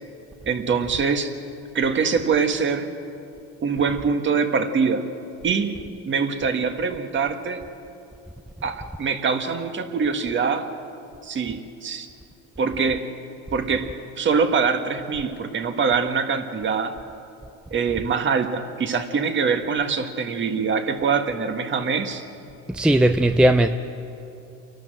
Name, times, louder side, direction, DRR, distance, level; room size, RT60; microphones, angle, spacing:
voice 1, 0.4-1.3 1.7-2.9 3.6-5.0 5.4-5.8 6.0-7.6 8.6-10.7 11.2-12.1 12.6-13.1 13.5-17.0 17.7-22.2, right 5 dB, 35° right, 7 dB, 1.7 m, -24 dB
voice 2, 22.7-23.7, right 1 dB, 5° right, 8 dB, 0.5 m, -17 dB
28.5 x 12.0 x 7.8 m, 2.7 s
supercardioid pair, 105°, 35 cm